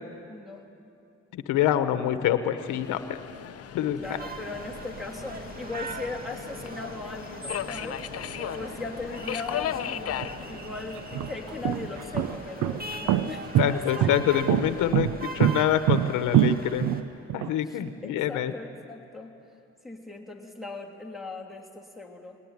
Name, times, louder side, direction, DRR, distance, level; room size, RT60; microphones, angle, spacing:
voice 1, 0.3-0.7 3.9-14.4 17.6-19.3 19.8-22.4, left 3 dB, ahead, -2 dB, 3.1 m, -39 dB
voice 2, 1.3-3.0 3.7-4.0 13.6-16.9 17.3-18.5, left 11 dB, 90° left, 10 dB, 1.1 m, -26 dB
Subway metro underground, 2.6-14.9, left 10 dB, 50° left, 0.7 m, -38 dB
sound 1, 4.0-17.0, right 2 dB, 30° right, 2.1 m, -40 dB
sound 2, 10.2-10.3 11.0-17.5, right 12 dB, 80° right, 0.7 m, -24 dB
21.5 x 19.0 x 9.6 m, 2.6 s
cardioid pair, 90°, 30 cm